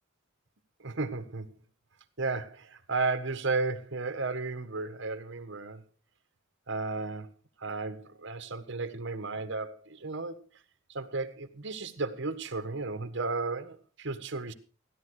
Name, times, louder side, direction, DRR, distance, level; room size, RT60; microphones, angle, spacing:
voice 1, 0.8-1.5 2.2-5.8 6.7-7.3 7.6-10.4 10.9-14.5, right 3 dB, 65° right, 1.5 m, -34 dB
16.0 x 11.0 x 4.8 m
head